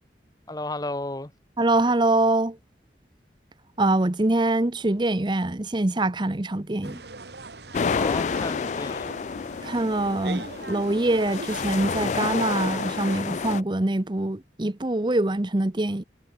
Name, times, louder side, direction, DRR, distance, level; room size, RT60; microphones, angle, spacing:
voice 1, 0.5-1.3 7.9-9.1, left 2 dB, 20° left, 1.2 m, -33 dB
voice 2, 1.6-2.6 3.8-7.0 9.6-16.0, right 2 dB, 25° right, 0.8 m, -24 dB
sound 1, 6.8-13.2, right 3 dB, 70° right, 2.4 m, -39 dB
sound 2, 7.7-13.6, left 5 dB, 40° left, 0.3 m, -29 dB
head